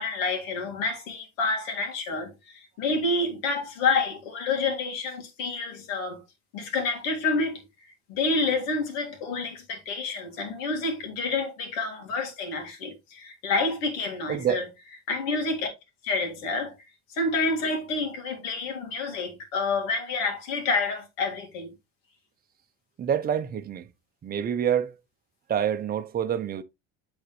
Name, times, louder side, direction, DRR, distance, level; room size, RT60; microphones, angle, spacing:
voice 1, 0.0-6.2 6.5-7.6 8.1-14.7 15.1-15.7 16.0-16.8 17.1-21.7, left 3 dB, 90° left, 2.1 m, -28 dB
voice 2, 14.3-14.6 23.0-23.9 24.2-24.9 25.5-26.6, right 9 dB, 25° right, 0.6 m, -27 dB
8.4 x 4.0 x 3.1 m
cardioid pair, 120°, 37 cm